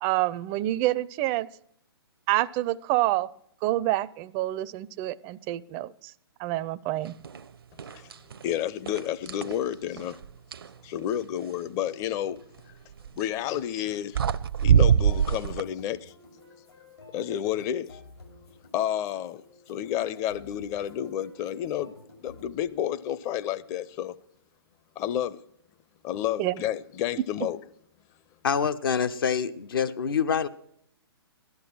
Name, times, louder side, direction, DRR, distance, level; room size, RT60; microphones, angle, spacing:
voice 1, 0.0-1.5 2.3-3.3 3.6-6.1 6.4-7.1 26.4-26.5, right 16 dB, 25° right, 0.5 m, -27 dB
sound 1, 7.2-7.4 7.8-8.4 8.9-10.7 12.9-13.2 13.9-14.0 14.1-15.6, right 8 dB, 65° right, 0.6 m, -24 dB
voice 2, 8.4-10.2 10.8-12.4 13.2-14.2 14.6-16.1 17.1-18.0 18.7-21.9 22.2-24.2 25.0-25.4 26.0-27.6, left 11 dB, 25° left, 0.6 m, -30 dB
sound 2, 14.4-22.4, left 3 dB, 80° left, 6.2 m, -51 dB
voice 3, 28.4-30.5, left 7 dB, 60° left, 0.8 m, -26 dB
16.0 x 12.0 x 6.2 m
figure-of-eight pair, 120°, 13 cm